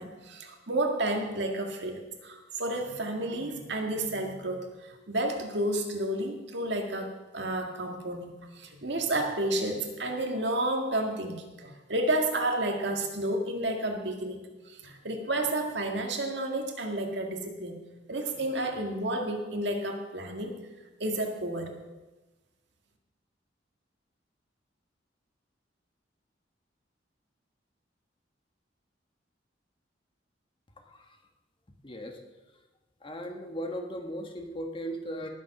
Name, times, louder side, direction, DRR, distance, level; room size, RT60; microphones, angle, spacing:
voice 1, 0.0-17.8 18.1-20.6 21.0-21.8, right 1 dB, 65° right, 3 dB, 1.9 m, -31 dB
voice 2, 31.8-32.2 33.0-35.3, equal, 30° left, 3 dB, 1.5 m, -37 dB
19.0 x 7.4 x 6.0 m, 1.1 s
head